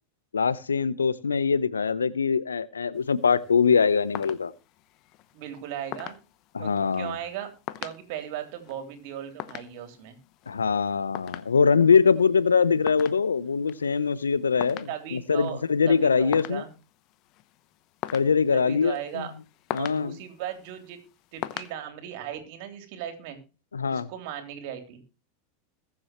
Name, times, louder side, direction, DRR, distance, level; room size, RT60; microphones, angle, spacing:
voice 1, 0.3-4.5 6.5-7.2 10.5-16.6 18.1-19.2 19.7-20.2 23.7-24.1, left 5 dB, 85° left, 0.8 m, -23 dB
sound 1, 2.9-21.7, left 15 dB, 45° left, 0.9 m, -43 dB
voice 2, 5.3-6.1 6.6-7.5 7.8-10.2 14.9-16.7 18.5-19.3 19.8-21.0 21.3-23.4 23.9-25.0, right 10 dB, 55° right, 3.3 m, -37 dB
21.0 x 7.7 x 3.1 m
hypercardioid pair, 95°, 0 cm